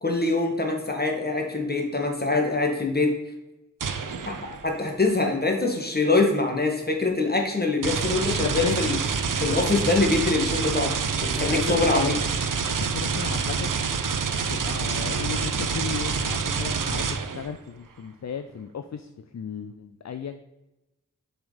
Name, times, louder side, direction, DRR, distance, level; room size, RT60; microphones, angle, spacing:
voice 1, 0.0-3.1 4.6-9.0 9.3-11.0 11.2-12.2, left 3 dB, 30° left, 2 dB, 1.8 m, -24 dB
sound 1, 3.8-4.8 7.8-17.6, right 5 dB, 80° right, 0.7 m, -27 dB
voice 2, 8.4-8.9 11.4-12.2 12.9-13.8 14.3-20.4, left 7 dB, 55° left, 9 dB, 0.5 m, -34 dB
7.1 x 5.2 x 5.1 m, 0.99 s
wide cardioid pair, 60°, 32 cm